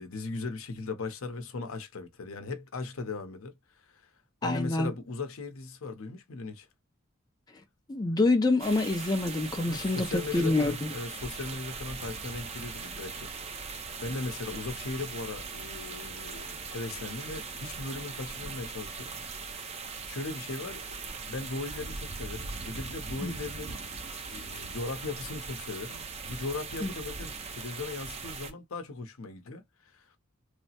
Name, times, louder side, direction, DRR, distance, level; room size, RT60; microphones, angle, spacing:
voice 1, 0.0-4.1 4.4-6.7 9.6-13.7 14.0-19.7 20.1-21.0 21.2-23.8 24.3-30.1, left 3 dB, 70° left, 0.7 m, -38 dB
voice 2, 4.4-4.9 7.9-10.9 23.2-23.3 26.8-26.9, left 2 dB, 20° left, 0.4 m, -26 dB
sound 1, 8.6-28.5, right 4 dB, 30° right, 0.5 m, -40 dB
3.2 x 2.0 x 2.7 m
head